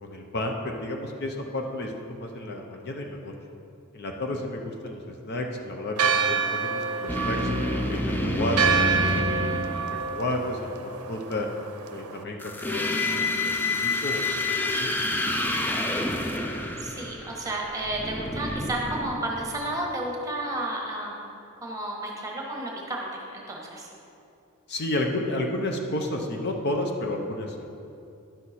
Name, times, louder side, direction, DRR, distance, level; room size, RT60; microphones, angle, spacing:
voice 1, 0.0-3.3 3.9-7.5 7.9-9.2 10.1-11.5 11.9-13.0 13.4-14.2 14.6-14.9 24.7-27.6, left 1 dB, 50° left, 2 dB, 0.7 m, -31 dB
Church bell, 6.0-12.2, right 5 dB, 80° right, 0.6 m, -28 dB
sound 1, 7.1-10.4 12.4-19.7, left 2 dB, 10° left, 0.4 m, -28 dB
voice 2, 16.8-21.2 21.6-23.9, right 1 dB, 15° right, -1 dB, 1.2 m, -32 dB
10.5 x 6.4 x 4.2 m, 2.7 s
head